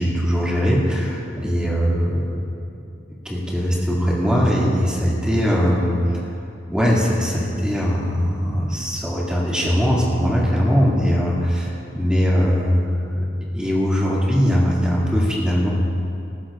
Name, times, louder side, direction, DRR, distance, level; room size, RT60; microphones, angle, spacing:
voice 1, 0.0-2.4 3.2-6.3 6.7-13.2 13.5-15.7, equal, 5° right, -6 dB, 2.5 m, -20 dB
20.0 x 14.5 x 2.6 m, 2.6 s
head